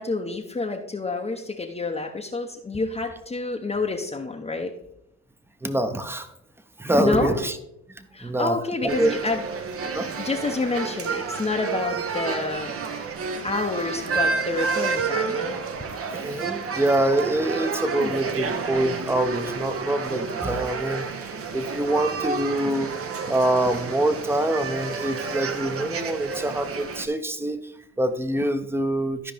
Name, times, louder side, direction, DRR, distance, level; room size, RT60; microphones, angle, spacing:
voice 1, 0.0-4.7 7.0-7.3 8.1-9.4 10.2-12.7 13.4-15.6 18.0-18.3, left 3 dB, 20° left, 1 dB, 0.8 m, -28 dB
voice 2, 5.6-6.3 6.8-7.6 7.9-9.1 9.9-10.1 16.1-23.0 23.3-29.3, right 1 dB, 10° right, 9 dB, 0.8 m, -25 dB
sound 1, 8.9-27.1, right 5 dB, 50° right, 0.9 m, -30 dB
13.5 x 5.0 x 3.4 m, 0.79 s
cardioid pair, 90°, 30 cm